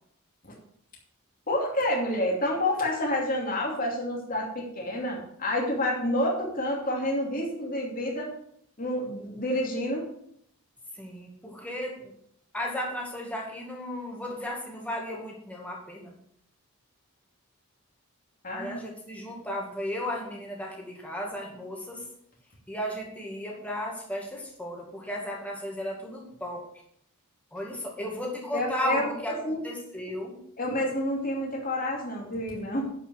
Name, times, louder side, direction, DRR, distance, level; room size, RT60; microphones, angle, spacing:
voice 1, 1.5-8.3 8.8-10.1 18.4-18.8 28.5-29.6 30.6-32.9, left 1 dB, 40° left, -2 dB, 2.9 m, -29 dB
voice 2, 10.9-12.1 12.5-16.1 18.5-22.0 22.7-26.7 27.5-30.4, left 1 dB, 5° left, -2 dB, 2.1 m, -35 dB
11.5 x 5.4 x 6.5 m, 0.69 s
head